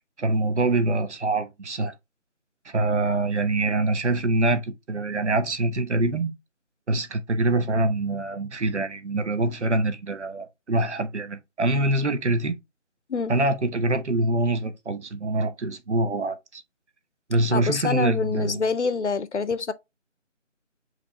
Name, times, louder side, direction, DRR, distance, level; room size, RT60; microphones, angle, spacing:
voice 1, 0.0-1.9 2.6-6.3 6.9-12.5 13.3-16.6 17.3-18.6, right 2 dB, 65° right, 0.9 m, -25 dB
voice 2, 17.5-19.7, left 4 dB, 65° left, 0.7 m, -26 dB
5.0 x 3.0 x 3.1 m
figure-of-eight pair, 165°, 38 cm